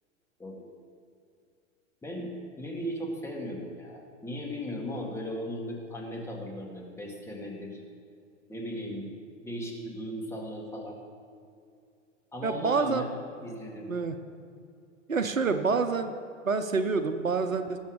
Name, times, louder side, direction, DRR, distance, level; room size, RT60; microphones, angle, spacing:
voice 1, 2.0-7.8 8.5-9.2 9.4-11.0 12.3-13.2 13.4-13.9, equal, 5° left, -1 dB, 2.2 m, -37 dB
voice 2, 12.4-13.1 13.9-14.2 15.1-16.1 16.4-17.8, right 4 dB, 85° right, 8 dB, 0.9 m, -27 dB
19.5 x 7.3 x 5.1 m, 2.4 s
figure-of-eight pair, 95°, 39 cm